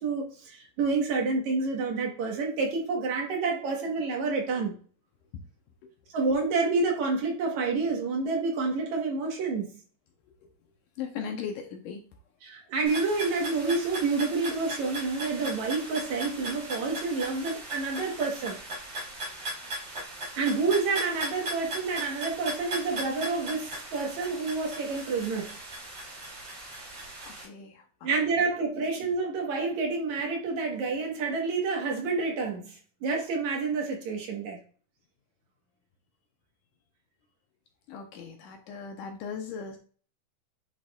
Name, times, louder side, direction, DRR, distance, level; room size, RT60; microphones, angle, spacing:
voice 1, 0.0-4.8 6.1-9.7 12.4-18.6 20.4-25.6 28.0-34.6, right 4 dB, 60° right, 1 dB, 2.3 m, -29 dB
voice 2, 11.0-12.0 27.4-27.7 37.9-39.8, left 6 dB, 75° left, 4 dB, 2.2 m, -37 dB
sound 1, 12.9-27.5, right 1 dB, 45° right, 3.6 m, -38 dB
9.4 x 4.9 x 2.3 m, 0.41 s
omnidirectional pair, 4.1 m